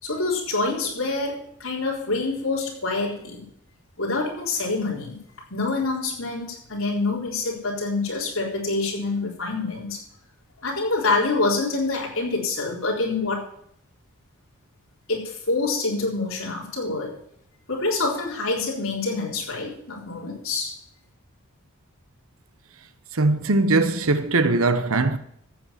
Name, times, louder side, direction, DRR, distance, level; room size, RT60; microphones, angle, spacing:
voice 1, 0.0-3.4 4.0-5.2 5.5-10.0 10.6-13.4 15.1-17.2 17.7-20.8, left 3 dB, 65° left, 4.1 m, -26 dB
voice 2, 23.1-25.2, right 2 dB, 70° right, 0.9 m, -20 dB
14.5 x 7.4 x 5.8 m
head